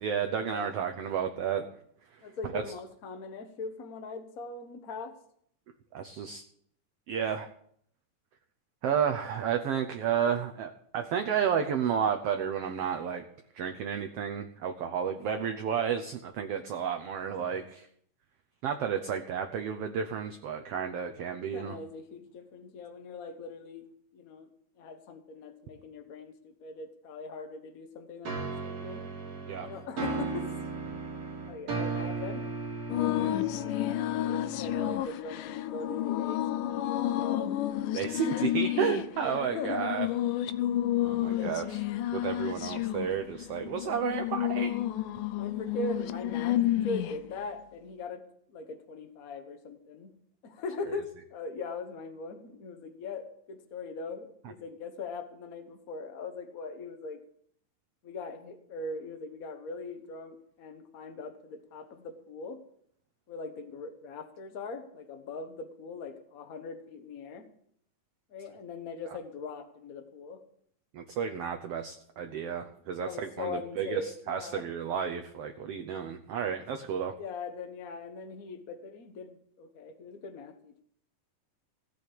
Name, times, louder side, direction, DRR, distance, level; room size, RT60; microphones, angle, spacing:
voice 1, 0.0-1.7 2.1-2.7 5.9-6.4 7.1-7.5 8.8-13.2 13.5-17.9 18.6-21.8 29.5-29.7 30.9-31.0 33.2-33.4 37.9-40.1 41.0-41.8 42.1-44.7 70.9-77.2, right 7 dB, 70° right, 5 dB, 1.5 m, -32 dB
voice 2, 2.2-5.1 21.5-24.5 24.8-29.0 29.6-30.5 31.5-32.4 33.9-37.5 38.0-38.4 39.2-39.8 41.1-41.5 43.8-44.1 45.3-48.2 48.5-50.1 50.4-57.2 58.0-62.6 63.3-67.5 68.3-70.4 73.0-74.6 77.2-80.8, left 3 dB, 55° left, 7 dB, 1.0 m, -41 dB
sound 1, 28.3-35.1, right 4 dB, 50° right, 3.2 m, -36 dB
sound 2, 32.9-47.3, left 13 dB, 85° left, 2.2 m, -31 dB
17.0 x 6.3 x 8.6 m, 0.67 s
omnidirectional pair, 3.7 m